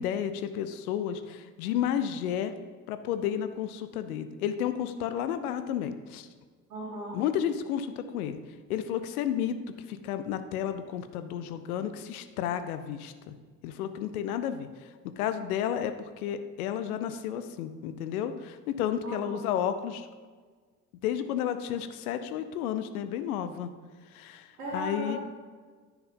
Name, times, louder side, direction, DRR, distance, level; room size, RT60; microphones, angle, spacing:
voice 1, 0.0-2.5 2.9-6.3 7.1-8.4 8.7-9.6 9.9-13.4 13.6-14.7 15.2-20.1 21.0-23.7 24.1-25.2, left 9 dB, 75° left, 10 dB, 0.7 m, -32 dB
voice 2, 6.7-7.2 19.0-19.4 24.6-25.2, right 1 dB, 85° right, -5 dB, 1.4 m, -36 dB
9.9 x 4.8 x 5.3 m, 1.5 s
figure-of-eight pair, 50°, 45 cm